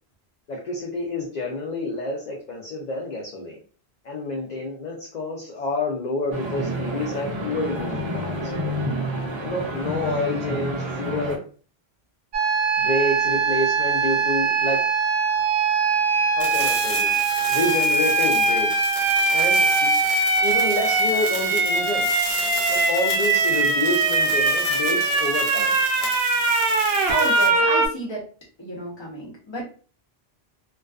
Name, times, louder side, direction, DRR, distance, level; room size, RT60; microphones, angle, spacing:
voice 1, 0.5-3.6 4.0-8.5 9.4-11.4 12.8-14.8 16.4-17.2 17.5-18.7 19.3-19.9 20.4-22.1 22.7-25.8, left 2 dB, 55° left, -1 dB, 0.5 m, -28 dB
sound 1, 6.3-11.4, equal, 40° right, 0.4 m, -29 dB
sound 2, 12.3-27.9, right 4 dB, 70° right, 0.8 m, -21 dB
sound 3, 16.4-27.5, left 3 dB, 70° left, 0.9 m, -34 dB
voice 2, 27.1-28.2 28.6-29.6, right 1 dB, 30° left, -3 dB, 0.8 m, -30 dB
2.3 x 2.3 x 2.3 m, 0.40 s
omnidirectional pair, 1.1 m